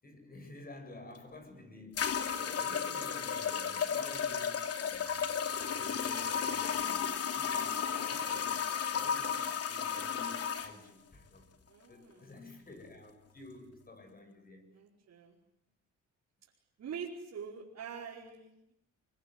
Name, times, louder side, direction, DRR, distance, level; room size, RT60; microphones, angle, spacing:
voice 1, 0.0-5.1 5.8-11.5 11.9-14.7, left 2 dB, 30° left, 6 dB, 7.7 m, -51 dB
sound 1, 1.2-1.3 2.0-10.7, left 7 dB, 55° left, 2.7 m, -34 dB
voice 2, 11.7-12.2 14.7-15.4 16.8-18.7, right 6 dB, 60° right, -3 dB, 4.9 m, -45 dB
24.5 x 24.0 x 9.7 m, 0.77 s
cardioid pair, 90°, 30 cm